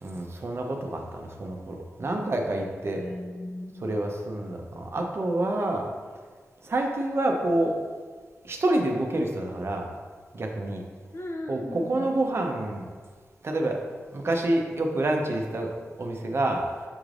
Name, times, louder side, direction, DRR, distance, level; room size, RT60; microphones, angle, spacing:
voice 1, 0.0-3.0 3.8-5.9 6.6-7.8 8.4-9.9 10.3-10.8 11.5-12.8 13.4-13.8 14.1-16.7, right 1 dB, 50° right, 2 dB, 0.6 m, -28 dB
voice 2, 3.0-4.0 11.1-12.1, left 1 dB, 50° left, 1 dB, 0.6 m, -37 dB
6.1 x 3.2 x 2.5 m, 1.5 s
cardioid pair, 60°, 6 cm